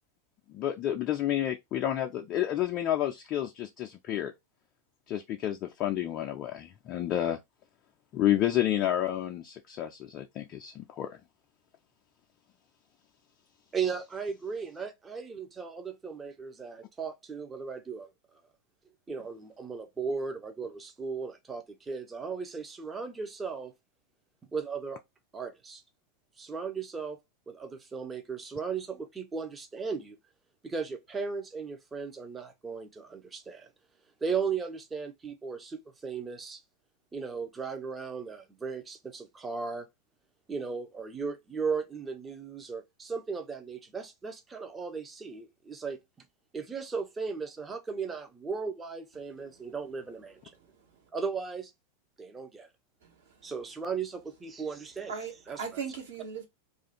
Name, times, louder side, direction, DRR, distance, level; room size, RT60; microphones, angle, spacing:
voice 1, 0.5-4.3 5.1-7.4 8.1-11.2, left 12 dB, 35° left, 0.4 m, -30 dB
voice 2, 13.7-18.1 19.1-23.7 24.5-25.0 25.3-25.8 26.4-27.2 27.5-30.2 30.6-33.7 34.2-36.6 37.1-39.9 40.5-46.0 46.5-50.4 51.1-51.7 52.2-52.7 53.4-55.1 55.5-55.8, right 5 dB, 15° right, 0.6 m, -36 dB
voice 3, 53.0-53.5 55.1-56.5, right 6 dB, 60° right, 1.2 m, -39 dB
2.5 x 2.3 x 4.0 m
figure-of-eight pair, 90°, 0 cm